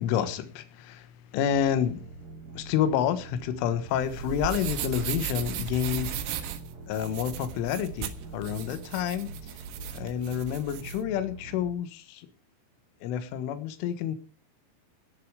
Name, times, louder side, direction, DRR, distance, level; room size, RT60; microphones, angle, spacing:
voice 1, 0.0-2.0 2.5-6.5 6.9-9.5 10.0-12.3 13.0-14.2, left 9 dB, 80° left, 10 dB, 3.8 m, -29 dB
Industrial-Pulse-Drone, 1.4-11.7, right 2 dB, 40° right, 3.1 m, -45 dB
sound 1, 3.9-11.0, right 10 dB, 85° right, 3.9 m, -36 dB
17.5 x 10.5 x 5.0 m, 0.37 s
omnidirectional pair, 5.7 m